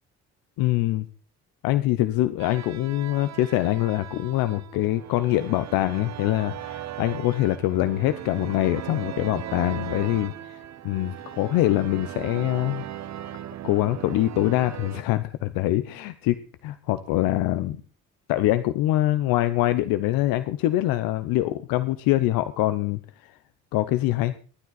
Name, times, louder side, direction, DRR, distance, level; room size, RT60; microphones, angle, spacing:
voice 1, 0.6-1.1 1.6-10.6 10.8-12.8 13.6-17.8 18.3-23.4 23.7-24.3, left 15 dB, 85° left, 12 dB, 0.8 m, -24 dB
sound 1, 2.4-15.0, right 11 dB, 55° right, 0.8 m, -38 dB
21.5 x 9.5 x 4.1 m, 0.38 s
supercardioid pair, 70°, 33 cm